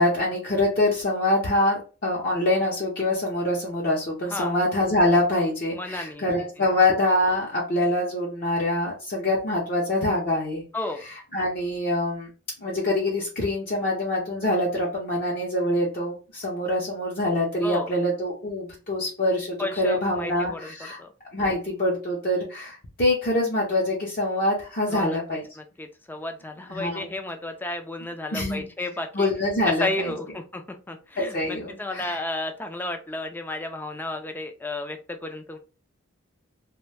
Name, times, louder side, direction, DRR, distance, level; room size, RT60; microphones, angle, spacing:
voice 1, 0.0-10.6 11.0-12.3 12.6-21.0 21.3-25.4 26.7-27.1 28.3-28.7 29.1-30.1 31.2-32.2, left 1 dB, 45° left, -4 dB, 0.6 m, -25 dB
voice 2, 5.8-6.2 10.7-11.1 17.6-17.9 19.6-20.6 21.0-21.1 24.9-25.2 25.6-29.3 29.7-35.6, left 2 dB, 10° left, 5 dB, 0.3 m, -32 dB
2.4 x 2.1 x 3.3 m, 0.34 s
head